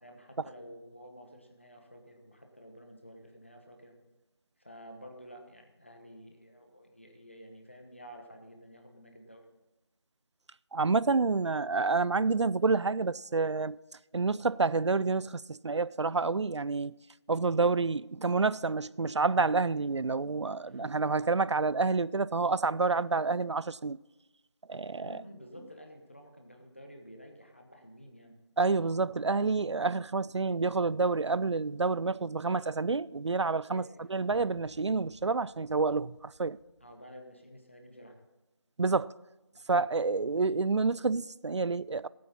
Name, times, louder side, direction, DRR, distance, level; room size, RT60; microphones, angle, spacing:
voice 1, 0.0-3.9 4.6-9.4 20.6-20.9 25.0-28.4 33.7-34.0 36.8-38.2, equal, 25° left, 1.2 m, -51 dB
voice 2, 10.7-13.8 14.1-16.9 17.3-24.0 24.7-25.1 28.6-33.8 34.1-36.6 38.8-39.1 39.7-42.1, right 4 dB, 85° right, 0.4 m, -28 dB
sound 1, 34.3-37.0, equal, 45° left, 1.6 m, -59 dB
18.5 x 8.5 x 4.3 m
figure-of-eight pair, 180°, 14 cm